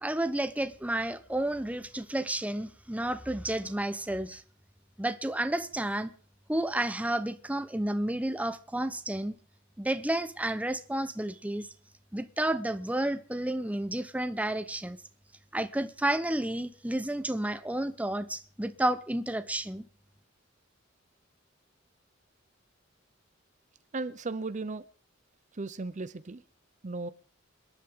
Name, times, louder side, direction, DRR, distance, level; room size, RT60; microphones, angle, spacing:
voice 1, 0.0-4.4 5.0-6.1 6.5-9.4 9.8-11.7 12.1-15.0 15.5-19.9, right 1 dB, 5° right, 0.9 m, -31 dB
voice 2, 23.9-24.8 25.5-26.4 26.8-27.1, right 3 dB, 40° right, 0.7 m, -35 dB
28.0 x 11.0 x 3.7 m
head